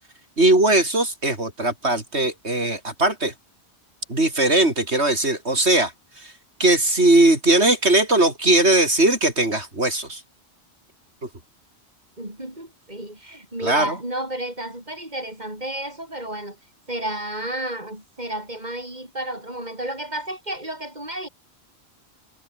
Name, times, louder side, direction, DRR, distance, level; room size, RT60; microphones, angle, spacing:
voice 1, 0.4-3.3 4.1-6.3 6.6-10.2 11.2-11.3 13.6-14.0, right 2 dB, 85° right, 5.8 m, -19 dB
voice 2, 12.2-16.6 16.9-21.3, right 1 dB, 40° right, 7.8 m, -32 dB
omnidirectional pair, 1.1 m